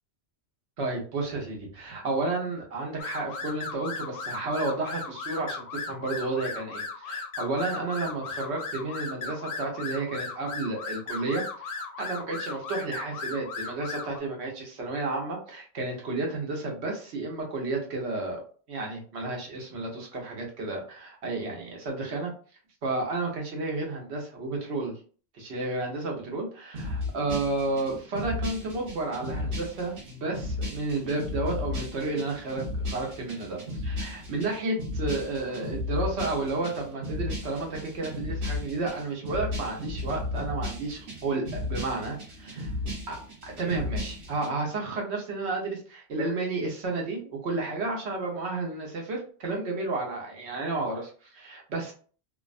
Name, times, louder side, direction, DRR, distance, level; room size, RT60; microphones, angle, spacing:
voice 1, 0.8-18.4 18.7-22.3 22.8-25.0 25.3-42.7 43.1-51.9, right 3 dB, 90° right, 0 dB, 1.1 m, -32 dB
sound 1, 3.0-14.2, left 4 dB, 65° left, 0.7 m, -37 dB
sound 2, 26.7-44.5, left 2 dB, 60° right, 1.1 m, -35 dB
2.7 x 2.2 x 2.5 m, 0.41 s
omnidirectional pair, 1.1 m